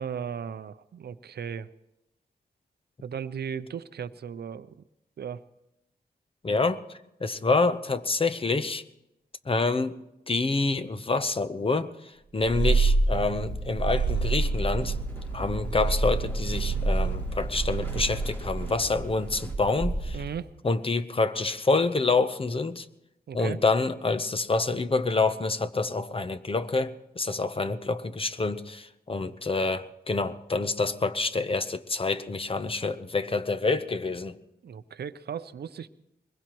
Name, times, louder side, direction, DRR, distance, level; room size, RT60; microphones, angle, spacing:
voice 1, 0.0-1.7 3.0-4.8 5.2-5.4 20.1-20.5 23.3-23.6 34.6-35.9, right 7 dB, 75° right, 14 dB, 0.6 m, -36 dB
voice 2, 6.4-6.8 7.2-8.8 9.5-10.0 10.3-11.9 12.3-14.9 15.3-20.2 20.6-22.9 23.3-34.4, left 3 dB, 35° left, 10 dB, 0.8 m, -27 dB
Purr, 12.4-20.5, right 3 dB, 25° right, 1.0 m, -28 dB
sound 1, 14.0-19.5, right 1 dB, 10° left, 2.7 m, -41 dB
22.0 x 21.0 x 3.1 m, 0.88 s
wide cardioid pair, 80°, 17 cm